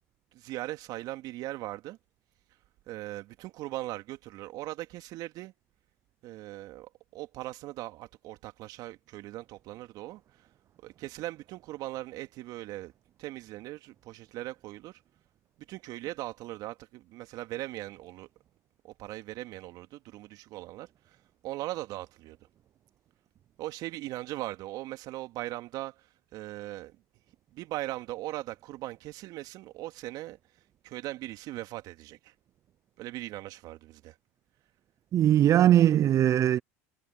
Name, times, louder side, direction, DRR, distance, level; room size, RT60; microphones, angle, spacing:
voice 1, 0.3-2.0 2.9-5.5 6.2-10.2 10.8-12.9 13.2-15.0 15.7-18.3 18.8-20.9 21.4-22.4 23.6-26.1 26.3-27.0 27.5-30.4 30.8-32.3 33.0-34.1, right 17 dB, 55° right, 2.6 m, -39 dB
voice 2, 35.1-36.6, right 11 dB, 40° right, 0.5 m, -20 dB
hypercardioid pair, 85°, 8 cm